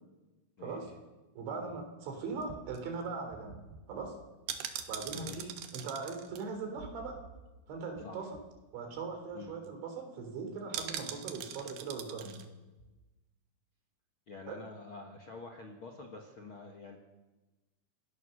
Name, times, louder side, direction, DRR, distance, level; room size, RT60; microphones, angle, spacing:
voice 1, 1.4-3.6 3.9-4.1 4.9-7.2 7.7-8.3 8.7-12.4 14.5-14.6, right 4 dB, 85° right, 4 dB, 5.9 m, -40 dB
sound 1, 2.4-7.6 7.9-8.0 8.3-8.6 9.0-9.1 9.3-9.7 10.7-12.5 12.8-12.9, right 9 dB, 70° right, 3.2 m, -43 dB
voice 2, 5.1-5.5 8.0-8.2 9.3-9.5 14.3-17.0, left 3 dB, 60° left, 2 dB, 1.3 m, -47 dB
27.0 x 18.0 x 6.6 m, 1.1 s
omnidirectional pair, 5.1 m